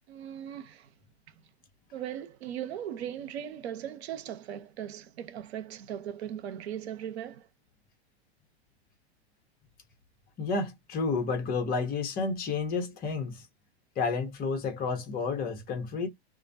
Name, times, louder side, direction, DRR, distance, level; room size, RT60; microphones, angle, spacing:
voice 1, 0.1-0.9 1.9-7.5, right 10 dB, 75° right, 0.7 m, -38 dB
voice 2, 10.4-13.4 14.0-16.1, left 4 dB, 30° left, 0.9 m, -30 dB
2.3 x 2.1 x 2.6 m
hypercardioid pair, 125°, 32 cm